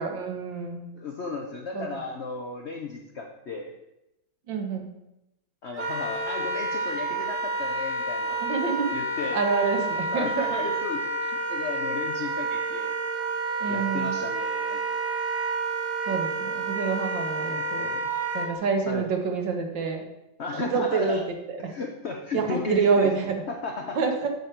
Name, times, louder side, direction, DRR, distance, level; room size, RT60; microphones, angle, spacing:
voice 1, 0.0-0.9 1.7-1.9 4.5-4.9 8.4-10.3 13.6-14.2 16.1-17.9 18.3-20.0 20.6-21.2 21.5-21.7 22.3-23.4 24.0-24.3, right 5 dB, 65° right, 4 dB, 1.7 m, -27 dB
voice 2, 0.9-3.7 5.6-8.4 8.9-9.4 10.1-11.0 11.3-12.9 13.7-14.8 17.5-17.6 18.9-19.1 20.4-21.2 21.7-23.1 23.5-24.0, left 4 dB, 70° left, 2 dB, 0.6 m, -34 dB
Wind instrument woodwind instrument, 5.7-18.5, right 2 dB, 40° right, 0.8 m, -29 dB
8.0 x 6.7 x 4.4 m, 0.88 s
omnidirectional pair, 2.2 m